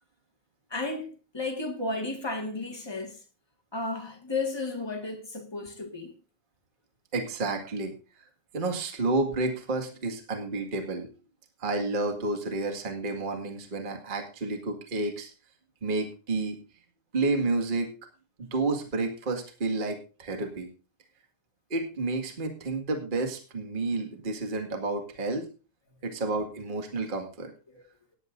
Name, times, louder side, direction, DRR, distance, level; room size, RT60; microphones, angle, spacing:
voice 1, 0.7-3.2 3.7-6.1 27.7-27.8, left 3 dB, 15° left, 1.0 m, -33 dB
voice 2, 7.1-7.9 8.5-11.1 11.6-15.3 15.8-16.6 17.1-17.9 18.4-20.7 21.7-25.5 26.0-27.5, right 3 dB, 20° right, 1.4 m, -30 dB
18.0 x 9.9 x 2.6 m
omnidirectional pair, 3.5 m